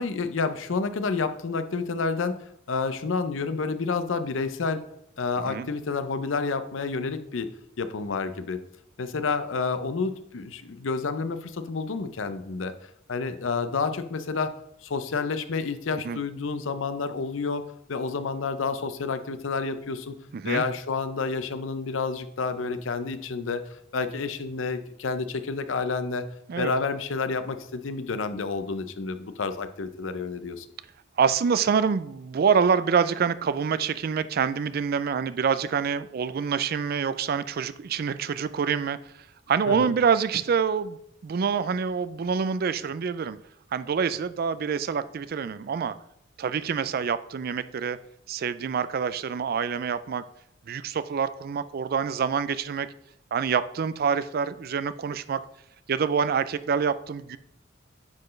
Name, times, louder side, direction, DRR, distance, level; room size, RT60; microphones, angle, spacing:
voice 1, 0.0-2.4 2.7-4.8 5.2-7.5 7.8-8.6 9.0-12.7 13.1-14.5 14.8-17.6 17.9-20.1 20.4-23.6 23.9-26.2 26.6-30.7 39.7-39.9, left 4 dB, 80° left, 10 dB, 0.6 m, -29 dB
voice 2, 20.3-20.6 26.5-26.7 31.2-39.0 39.5-41.0 41.2-43.4 43.7-45.9 46.4-48.0 48.3-50.2 50.7-52.9 53.3-55.4 55.9-57.4, right 6 dB, 50° right, 14 dB, 0.4 m, -26 dB
9.5 x 4.4 x 3.2 m, 0.77 s
head